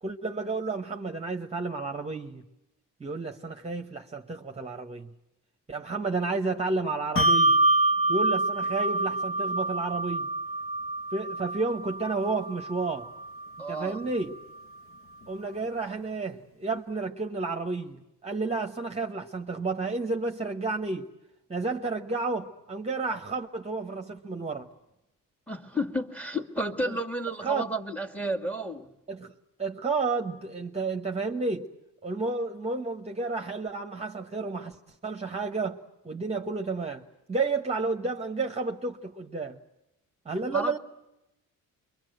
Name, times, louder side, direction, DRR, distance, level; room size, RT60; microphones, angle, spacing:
voice 1, 0.0-2.4 3.0-5.1 5.7-7.6 8.1-10.3 11.1-13.1 13.7-14.3 15.3-21.1 21.5-24.7 26.9-27.0 27.4-27.6 29.1-29.3 29.6-31.7 32.0-39.6 40.2-40.8, right 3 dB, 20° right, 1.3 m, -31 dB
Bell, 7.2-14.0, right 2 dB, 40° left, 1.2 m, -27 dB
voice 2, 13.6-14.0 25.5-28.9 40.5-40.8, equal, 5° left, 2.0 m, -31 dB
28.0 x 23.5 x 8.0 m
cardioid pair, 110°, 33 cm